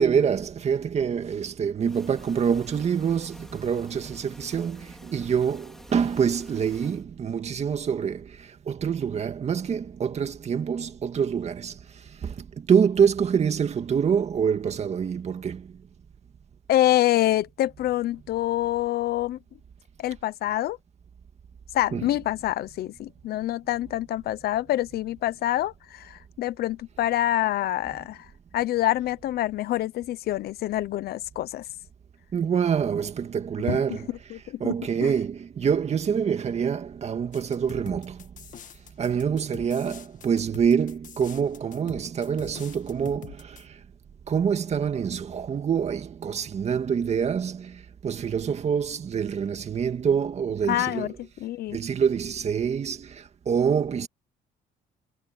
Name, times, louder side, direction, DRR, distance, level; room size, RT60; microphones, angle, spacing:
voice 1, 0.0-11.8 12.2-15.7 21.9-22.1 32.3-34.1 34.6-38.2 39.0-43.8 44.3-51.1 51.7-54.1, right 7 dB, 40° right, 2.1 m, -26 dB
sound 1, 1.8-7.0, equal, ahead, 4.0 m, -48 dB
voice 2, 16.7-19.4 20.0-20.8 21.7-28.3 28.5-31.6 33.7-34.0 34.3-34.7 35.0-35.1 50.7-51.1 51.4-51.8, left 14 dB, 65° left, 0.9 m, -26 dB
sound 2, 37.3-43.6, left 9 dB, 50° left, 1.7 m, -45 dB
cardioid pair, 110°, 17 cm